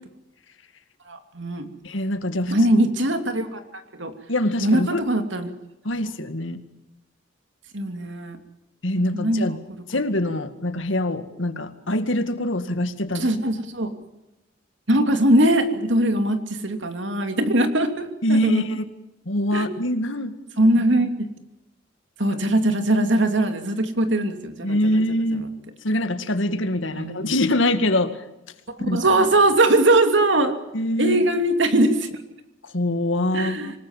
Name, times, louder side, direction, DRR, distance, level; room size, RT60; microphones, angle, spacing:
voice 1, 1.1-1.7 2.5-3.6 4.0-4.1 4.6-5.5 7.7-8.4 9.1-9.6 13.2-13.9 14.9-18.6 19.5-19.7 20.6-21.1 22.2-24.8 26.9-27.3 28.8-30.5 31.0-32.1 33.3-33.7, right 1 dB, 65° right, 7 dB, 2.8 m, -21 dB
voice 2, 1.8-2.5 4.3-5.0 5.8-6.6 8.8-9.6 9.9-13.3 18.2-18.8 19.3-20.3 24.6-25.5 25.8-28.2 28.8-29.0 30.7-31.3 32.7-33.7, left 1 dB, 75° left, 9 dB, 2.1 m, -24 dB
26.5 x 19.5 x 7.4 m, 0.94 s
head